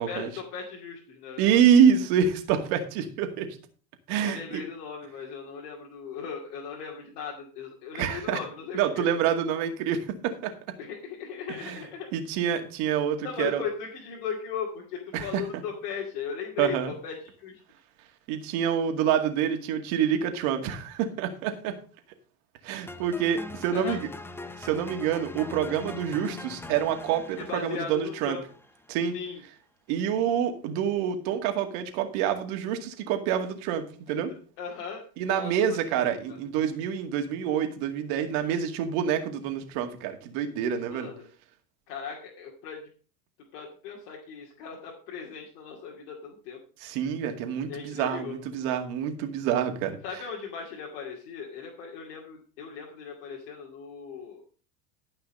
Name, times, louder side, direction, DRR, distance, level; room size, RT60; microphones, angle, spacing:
voice 1, 0.0-1.6 4.2-9.1 10.8-12.1 13.2-17.6 23.7-24.0 27.4-28.4 29.1-29.4 34.1-34.2 34.6-36.4 40.9-41.3 41.9-42.9 43.5-46.6 47.7-48.4 50.0-54.4, left 6 dB, 75° left, -2 dB, 2.5 m, -38 dB
voice 2, 1.4-3.5 4.1-4.6 8.0-8.4 8.7-10.1 10.4-10.5 11.6-11.8 12.1-13.6 15.1-15.3 16.6-16.9 18.3-21.7 22.6-24.1 24.6-28.4 28.9-29.1 29.9-34.3 35.2-41.1 46.8-50.0, right 8 dB, 65° right, 5 dB, 2.2 m, -27 dB
sound 1, 22.9-29.0, left 3 dB, 5° left, 0.6 m, -42 dB
12.5 x 5.6 x 5.4 m, 0.40 s
supercardioid pair, 115°, 47 cm